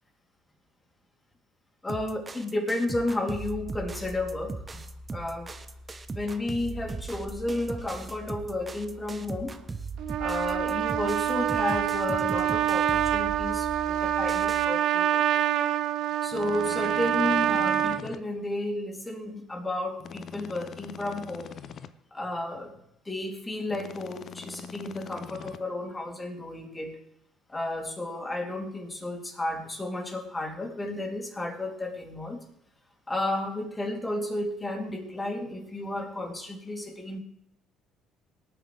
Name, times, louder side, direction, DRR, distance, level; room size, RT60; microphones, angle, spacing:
voice 1, 1.8-5.5 6.1-9.6 10.2-15.4 16.2-21.6 22.1-27.0 27.5-32.4 33.1-37.2, left 1 dB, 20° left, 2 dB, 3.2 m, -32 dB
sound 1, 1.9-14.7, right 3 dB, 25° right, 1.0 m, -39 dB
Trumpet, 10.0-18.0, right 11 dB, 65° right, 0.7 m, -26 dB
sound 2, 16.3-18.2 20.0-21.9 23.7-25.6, left 7 dB, 55° left, 0.7 m, -43 dB
19.0 x 9.1 x 3.5 m, 0.78 s
supercardioid pair, 70°, 0 cm